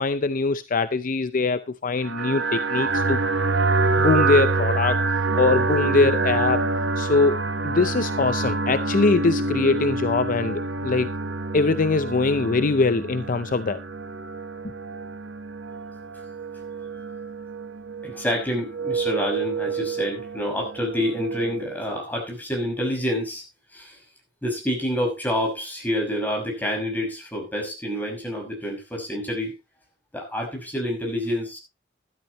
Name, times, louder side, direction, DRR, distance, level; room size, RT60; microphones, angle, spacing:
voice 1, 0.0-3.2 4.0-5.0 5.4-6.6 7.0-11.2 11.5-13.8, left 3 dB, 45° left, 0.6 m, -22 dB
sound 1, 2.0-21.7, right 3 dB, 75° right, 1.2 m, -27 dB
voice 2, 18.0-23.4 23.7-24.0 24.4-29.5 30.1-31.6, equal, 10° left, 5.7 m, -28 dB
13.5 x 12.0 x 3.0 m
head